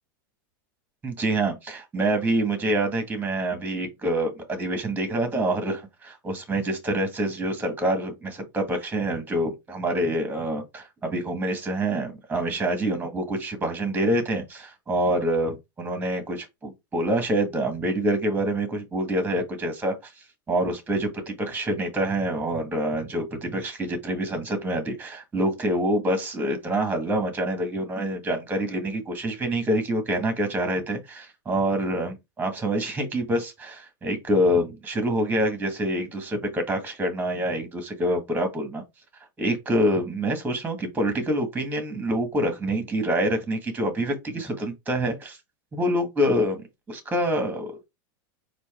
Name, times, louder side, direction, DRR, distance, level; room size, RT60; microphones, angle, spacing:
voice 1, 1.0-20.1 20.5-38.8 39.4-45.4 45.7-47.8, right 1 dB, 15° right, 1.7 m, -26 dB
4.5 x 2.7 x 4.3 m
hypercardioid pair, 115°, 12 cm